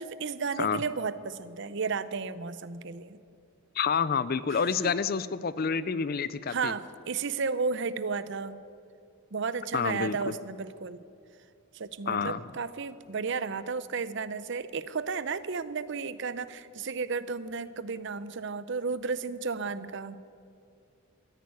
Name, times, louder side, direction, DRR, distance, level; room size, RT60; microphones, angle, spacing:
voice 1, 0.0-3.2 4.5-4.9 6.5-8.6 9.3-11.0 11.7-20.2, right 5 dB, 55° right, 15 dB, 0.6 m, -33 dB
voice 2, 3.8-6.7 9.7-10.3 12.1-12.4, left 6 dB, 45° left, 17 dB, 0.4 m, -28 dB
14.0 x 10.5 x 9.5 m, 2.5 s
head